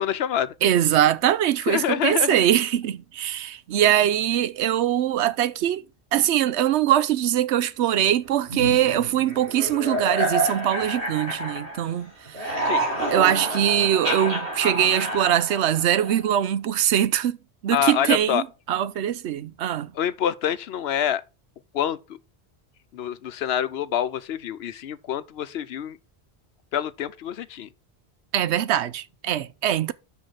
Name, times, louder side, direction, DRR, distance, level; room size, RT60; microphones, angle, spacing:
voice 1, 0.0-0.5 1.7-2.4 12.6-12.8 17.7-18.4 19.9-21.2 21.7-22.0 22.9-26.0 26.7-27.7, left 10 dB, 70° left, 0.9 m, -26 dB
voice 2, 0.6-5.8 6.1-12.6 13.1-17.4 17.6-19.9 28.3-29.9, right 11 dB, 85° right, 0.9 m, -22 dB
sound 1, 8.5-12.0 12.2-16.3, right 1 dB, 60° right, 3.1 m, -28 dB
6.4 x 5.8 x 6.1 m
omnidirectional pair, 1.1 m